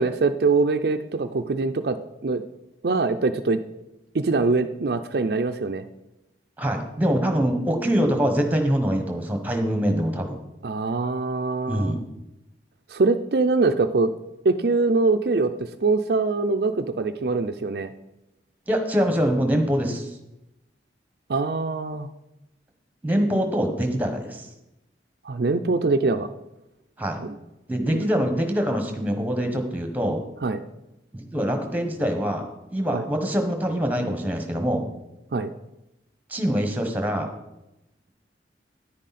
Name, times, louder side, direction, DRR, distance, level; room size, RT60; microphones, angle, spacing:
voice 1, 0.0-2.0 2.2-2.4 2.8-3.6 4.1-5.8 10.6-12.0 12.9-14.1 14.4-15.5 15.8-17.9 21.3-22.1 25.2-26.3 27.2-27.4 30.4-30.6 32.9-33.0 35.3-35.5, right 3 dB, 60° right, 8 dB, 0.5 m, -23 dB
voice 2, 6.6-10.4 11.7-12.0 18.7-20.1 23.0-24.5 27.0-27.2 27.7-30.2 31.1-32.5 32.7-34.8 36.3-37.3, equal, 10° right, 5 dB, 1.3 m, -24 dB
10.0 x 9.9 x 4.2 m, 0.93 s
head